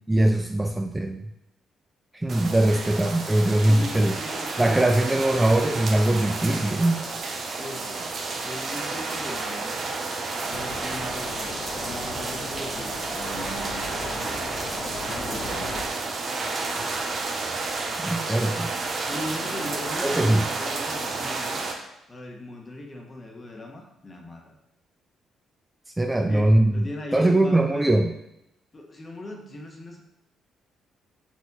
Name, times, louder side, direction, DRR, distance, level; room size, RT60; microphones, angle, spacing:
voice 1, 0.1-1.2 2.1-4.1 4.6-7.0 18.0-18.7 20.0-20.5 26.0-28.1, right 1 dB, 15° right, 4 dB, 0.4 m, -21 dB
sound 1, 2.3-21.7, right 3 dB, 50° right, 0.9 m, -31 dB
voice 2, 3.7-4.5 5.0-5.8 7.5-9.8 10.5-14.4 15.0-15.8 19.1-21.7 22.1-24.6 26.1-28.0 28.7-30.0, left 1 dB, 30° left, 2 dB, 1.3 m, -39 dB
sound 2, 10.5-15.8, left 3 dB, 55° left, 1.2 m, -37 dB
6.0 x 4.7 x 4.1 m, 0.86 s
cardioid pair, 90°, 0 cm